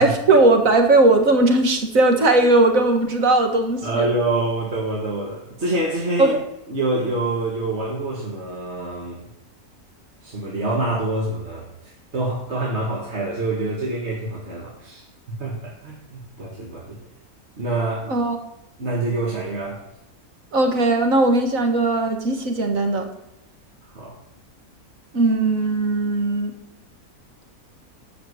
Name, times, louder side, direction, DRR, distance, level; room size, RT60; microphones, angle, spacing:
voice 1, 0.0-4.1 6.2-6.4 18.1-18.4 20.5-23.1 25.1-26.5, right 2 dB, 65° right, 5 dB, 2.1 m, -18 dB
voice 2, 3.8-6.4 6.7-9.2 10.2-11.7 12.1-17.0 17.6-18.2 18.8-19.8 23.9-24.1, right 2 dB, 50° right, -3 dB, 2.2 m, -26 dB
12.5 x 5.3 x 8.3 m, 0.87 s
omnidirectional pair, 1.5 m